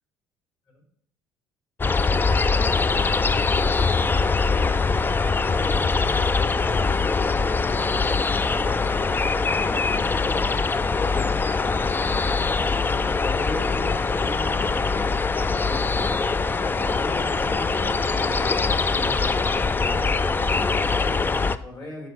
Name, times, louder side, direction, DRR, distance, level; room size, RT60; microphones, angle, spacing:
sound 1, 1.8-21.6, left 4 dB, 15° left, 0.3 m, -23 dB
voice 1, 3.1-9.0 9.5-10.7, left 2 dB, 75° left, -1 dB, 1.8 m, -46 dB
voice 2, 12.9-15.9 16.8-18.6 18.9-22.1, left 1 dB, 40° left, -1 dB, 3.3 m, -39 dB
11.5 x 4.0 x 3.3 m, 0.68 s
hypercardioid pair, 55°, 12 cm